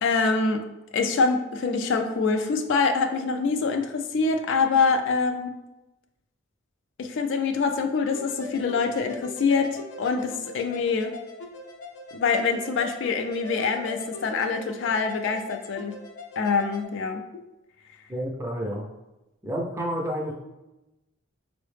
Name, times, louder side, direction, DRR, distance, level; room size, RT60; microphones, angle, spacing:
voice 1, 0.0-0.6 0.9-5.5 7.0-11.1 12.1-16.0 16.4-17.2, left 4 dB, 60° left, 5 dB, 0.3 m, -25 dB
sound 1, 8.1-16.8, left 2 dB, 85° left, 0.7 m, -41 dB
voice 2, 18.1-18.8 19.4-20.3, equal, 10° right, -1 dB, 0.4 m, -29 dB
4.6 x 2.0 x 3.2 m, 0.98 s
head